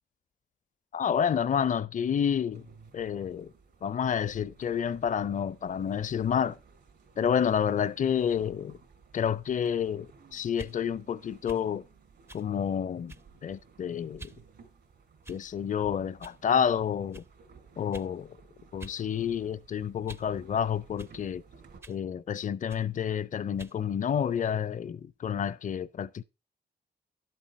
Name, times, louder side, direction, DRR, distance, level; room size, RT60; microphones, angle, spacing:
voice 1, 0.9-2.7 2.9-3.5 3.8-6.6 7.2-8.8 9.1-11.9 12.3-13.2 13.4-14.3 15.3-17.2 17.8-18.4 18.7-21.4 21.9-26.2, left 8 dB, 45° left, 0.5 m, -29 dB
sound 1, 2.5-21.8, right 5 dB, 75° right, 2.9 m, -56 dB
sound 2, 10.5-10.8 11.5-11.7 12.3-12.5 13.1-13.4 14.2-14.4 15.2-15.6 16.2-16.4 17.1-17.3 17.9-18.1 18.8-19.0 19.4-20.3 21.0-21.2 21.8-22.0 22.7-22.9 23.6-23.8, right 2 dB, 15° right, 0.4 m, -47 dB
11.0 x 7.6 x 4.2 m
cardioid pair, 75°, 18 cm